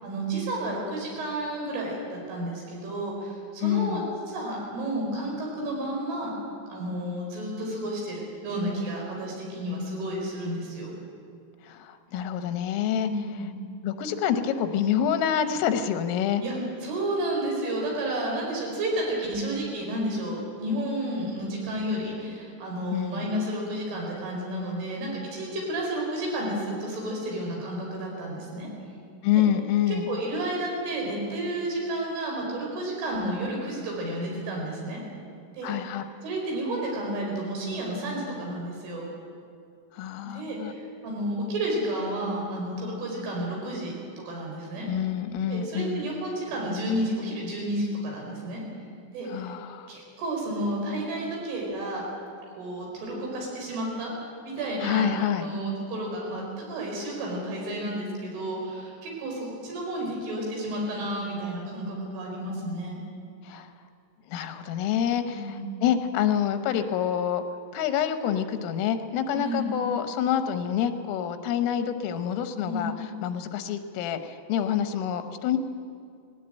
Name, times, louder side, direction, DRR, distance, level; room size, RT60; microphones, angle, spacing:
voice 1, 0.0-6.3 6.7-10.9 13.0-13.5 16.4-28.7 29.3-29.4 30.1-35.0 35.5-35.9 36.2-39.1 40.3-43.9 44.3-44.9 45.5-48.6 49.1-49.5 49.9-52.0 52.6-63.0 65.3-65.6 69.3-69.6 72.7-72.8, right 1 dB, 75° right, -2 dB, 7.3 m, -31 dB
voice 2, 3.6-4.1 11.6-13.1 13.8-16.4 22.9-23.3 29.2-30.1 35.6-36.0 39.9-40.7 44.9-46.1 49.3-50.0 54.8-55.5 63.4-63.7 64.3-67.4 67.7-75.6, left 9 dB, 90° left, 9 dB, 3.8 m, -27 dB
19.5 x 17.0 x 9.1 m, 2.3 s
omnidirectional pair, 5.7 m